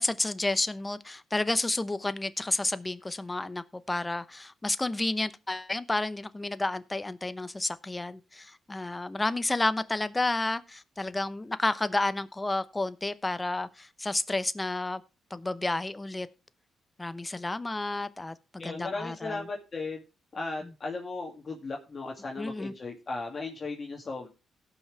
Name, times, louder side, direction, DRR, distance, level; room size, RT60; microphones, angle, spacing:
voice 1, 0.0-15.0 15.3-16.3 17.0-19.4 22.4-22.7, left 2 dB, 20° left, 0.8 m, -31 dB
voice 2, 18.6-20.0 20.3-24.3, left 3 dB, 40° left, 2.3 m, -36 dB
18.0 x 6.0 x 3.4 m
cardioid pair, 70°, 0 cm